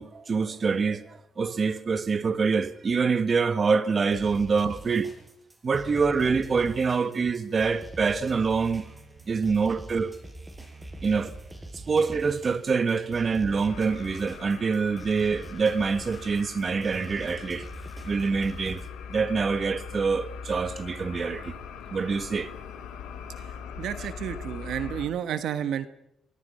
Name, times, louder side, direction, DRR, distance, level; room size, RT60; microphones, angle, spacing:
voice 1, 0.0-5.1 5.6-8.8 9.3-10.1 11.0-11.3 11.9-17.7 18.0-18.8 19.1-21.5 21.9-22.5, right 5 dB, 40° right, 1.5 m, -25 dB
sound 1, 4.1-18.9, right 2 dB, 15° right, 5.3 m, -44 dB
sound 2, 13.7-25.1, left 7 dB, 90° left, 3.3 m, -41 dB
voice 2, 23.4-25.9, right 9 dB, 75° right, 1.3 m, -31 dB
24.5 x 20.5 x 5.6 m
cardioid pair, 90°, 0 cm